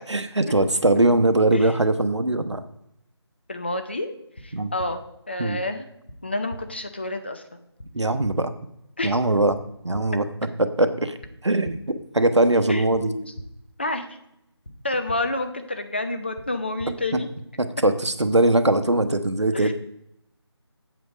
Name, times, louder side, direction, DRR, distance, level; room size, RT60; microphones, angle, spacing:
voice 1, 0.1-2.6 4.5-4.7 5.4-5.6 7.9-8.5 9.0-9.6 9.8-10.2 10.6-11.2 11.4-13.1 17.8-19.7, right 2 dB, 80° right, 10 dB, 1.0 m, -21 dB
voice 2, 3.5-5.9 6.2-7.6 9.0-9.2 12.7-13.3 13.8-14.1 14.8-17.3 19.5-19.7, left 2 dB, 25° left, 6 dB, 0.5 m, -29 dB
sound 1, 4.3-4.4 4.8-4.9 6.1-6.2 6.5-6.6 7.8-7.9 8.2-8.3 9.5-9.6 9.9-10.0 11.2-11.3 11.6-11.7 12.9-13.0 13.4-13.5 14.6-14.7 15.1-15.2 16.3-16.4 16.8-16.9, left 1 dB, 65° left, 2.5 m, -38 dB
7.9 x 7.8 x 5.0 m, 0.79 s
figure-of-eight pair, 160°, 15 cm